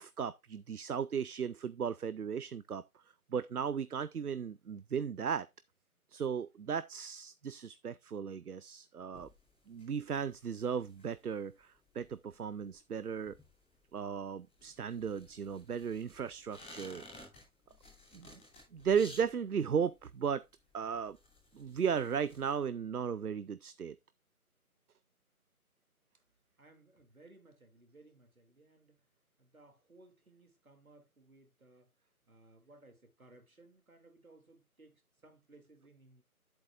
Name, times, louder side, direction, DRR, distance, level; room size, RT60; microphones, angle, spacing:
voice 1, 0.0-2.8 3.3-5.5 6.1-9.3 9.7-13.3 13.9-17.0 18.1-18.4 18.7-20.4 20.7-21.2 21.5-24.0, right 7 dB, 85° right, 0.6 m, -36 dB
sound 1, 9.1-22.5, left 1 dB, 10° left, 2.1 m, -57 dB
voice 2, 26.6-29.1 29.4-31.9 32.3-36.2, right 2 dB, 70° right, 2.7 m, -61 dB
10.0 x 8.2 x 2.4 m
figure-of-eight pair, 160°, 44 cm